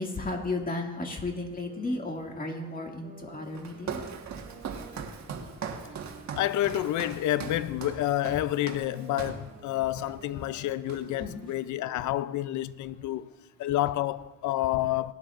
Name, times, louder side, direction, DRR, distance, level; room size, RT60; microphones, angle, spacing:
voice 1, 0.0-4.0 11.2-11.4 13.0-13.3, left 2 dB, 30° left, 2.3 m, -34 dB
sound 1, 1.5-6.9 7.4-12.2, right 3 dB, 40° right, 2.4 m, -52 dB
Walk footsteps, 3.5-9.5 10.0-10.2 10.5-11.3, right 6 dB, 65° right, 1.6 m, -40 dB
voice 2, 6.3-13.3 13.6-15.1, left 14 dB, 75° left, 0.5 m, -29 dB
19.5 x 12.0 x 2.5 m
cardioid pair, 90°, 30 cm